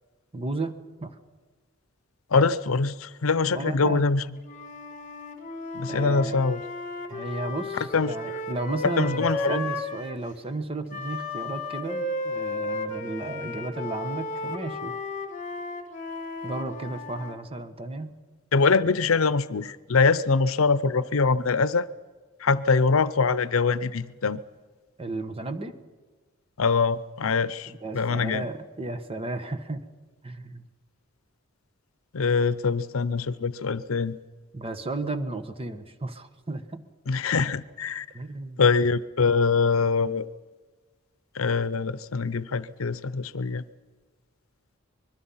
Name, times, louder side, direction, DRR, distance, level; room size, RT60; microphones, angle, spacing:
voice 1, 0.3-1.2 3.5-4.0 5.9-6.4 7.1-14.9 16.4-18.1 25.0-25.8 27.7-29.8 30.2-30.7 34.5-36.8 38.1-38.6, right 2 dB, 30° right, 10 dB, 1.3 m, -33 dB
voice 2, 2.3-4.2 5.7-6.6 7.9-8.4 8.8-9.6 18.5-21.9 22.4-24.4 26.6-28.5 32.1-34.2 37.1-38.1 38.6-40.3 41.3-43.6, left 4 dB, 80° left, 17 dB, 0.7 m, -24 dB
Wind instrument woodwind instrument, 4.4-10.2 10.9-17.4, left 2 dB, 40° left, 1.9 m, -34 dB
25.0 x 21.5 x 5.7 m, 1.4 s
head